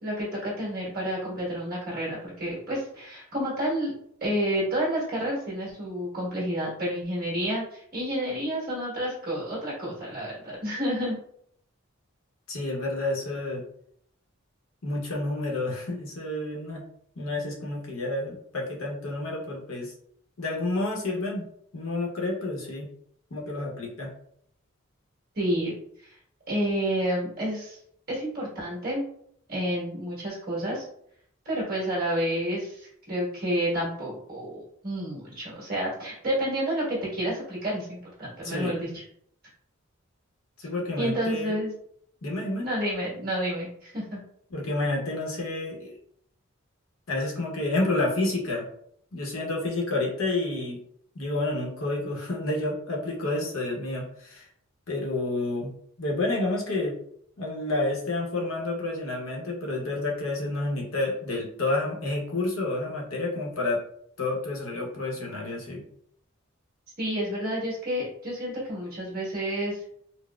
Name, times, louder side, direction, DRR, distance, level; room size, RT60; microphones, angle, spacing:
voice 1, 0.0-3.9 4.2-11.2 25.3-25.7 26.0-26.2 26.5-27.8 28.1-29.0 29.5-30.9 31.4-39.0 41.0-41.7 42.6-44.2 67.0-69.8, equal, 45° right, -5 dB, 1.4 m, -30 dB
voice 2, 12.5-13.6 14.8-16.8 17.2-19.9 20.4-21.5 21.7-22.9 23.3-24.1 38.4-38.8 40.6-41.6 42.2-42.7 44.5-45.9 47.1-48.7 49.1-50.8 51.1-54.4 54.9-55.7 56.0-57.0 57.4-63.8 64.2-65.8, left 2 dB, 75° left, -2 dB, 0.8 m, -29 dB
3.9 x 2.0 x 2.3 m, 0.66 s
head